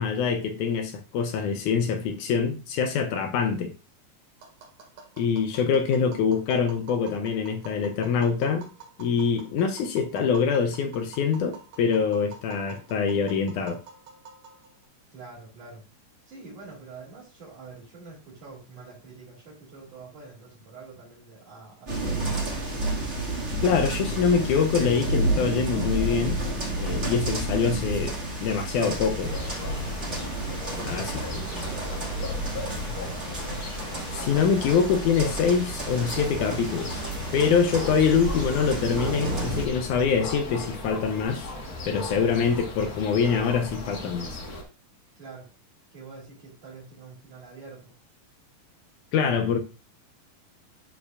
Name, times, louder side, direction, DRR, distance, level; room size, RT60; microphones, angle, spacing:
voice 1, 0.0-3.7 5.2-8.7 9.0-13.8 23.6-26.4 26.8-29.3 30.9-31.2 34.1-37.0 37.3-41.5 41.9-44.4 49.1-49.6, left 6 dB, 75° left, 2.0 m, -24 dB
Tap, 4.4-14.8, right 5 dB, 70° right, 3.3 m, -48 dB
voice 2, 15.1-15.8 16.3-23.0 31.2-33.7 45.2-45.5 45.9-47.9, right 4 dB, 50° right, 3.6 m, -46 dB
sound 1, 21.9-39.6, right 2 dB, 30° right, 1.6 m, -31 dB
sound 2, 29.2-44.6, left 1 dB, 50° left, 1.1 m, -36 dB
11.5 x 4.6 x 2.4 m
omnidirectional pair, 3.9 m